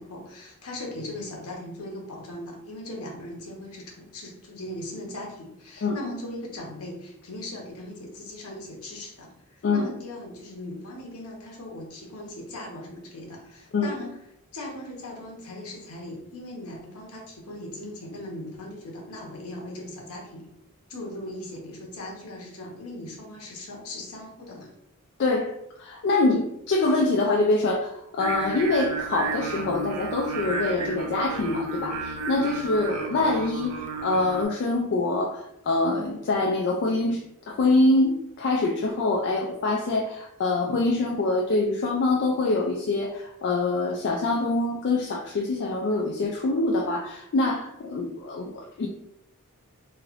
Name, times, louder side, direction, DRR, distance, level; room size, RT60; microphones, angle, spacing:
voice 1, 0.0-14.2 14.5-20.4 20.9-24.7, left 1 dB, 75° left, 0 dB, 0.8 m, -39 dB
voice 2, 25.2-25.5 25.8-37.2 37.5-48.9, left 2 dB, 50° left, -1 dB, 0.3 m, -25 dB
Singing, 28.2-34.4, right 3 dB, 80° right, 0.5 m, -32 dB
3.1 x 2.8 x 2.5 m, 0.81 s
head